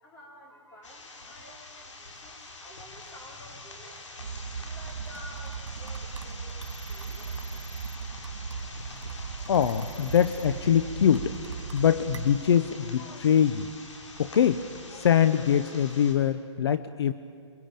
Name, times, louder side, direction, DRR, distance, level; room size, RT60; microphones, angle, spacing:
voice 1, 0.0-3.9 4.6-6.5 6.9-7.3, left 1 dB, 15° left, -2 dB, 4.8 m, -51 dB
sound 1, 0.8-16.1, left 2 dB, 75° left, 5.8 m, -45 dB
sound 2, 4.2-12.4, right 5 dB, 70° right, 3.1 m, -38 dB
voice 2, 9.5-11.4 11.7-13.7 14.2-17.1, left 8 dB, 55° left, 13 dB, 0.8 m, -23 dB
28.0 x 23.0 x 8.9 m, 2.3 s
hypercardioid pair, 155°, 16 cm